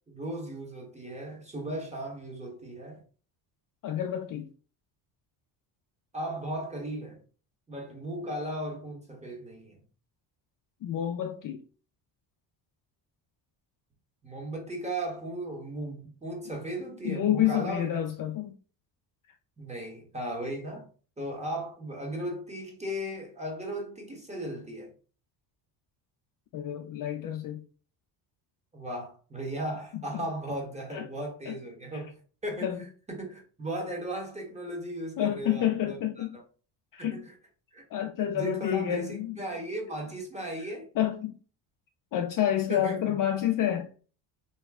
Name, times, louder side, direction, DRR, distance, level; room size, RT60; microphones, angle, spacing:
voice 1, 0.0-3.0 6.1-7.2 7.7-9.8 14.2-17.9 19.6-20.9 21.2-24.9 28.7-36.2 37.0-37.3 37.7-37.8 38.2-40.9 42.5-43.2, right 1 dB, 15° right, 1.2 m, -36 dB
voice 2, 3.8-4.5 10.8-11.6 17.0-18.6 26.5-27.6 29.9-30.2 30.9-31.1 31.5-31.6 31.9-32.0 32.6-32.8 35.2-36.4 36.9-37.3 37.9-39.4 41.0-41.4 42.1-43.9, left 11 dB, 45° left, 0.4 m, -29 dB
3.0 x 2.2 x 3.5 m
cardioid pair, 100°, 47 cm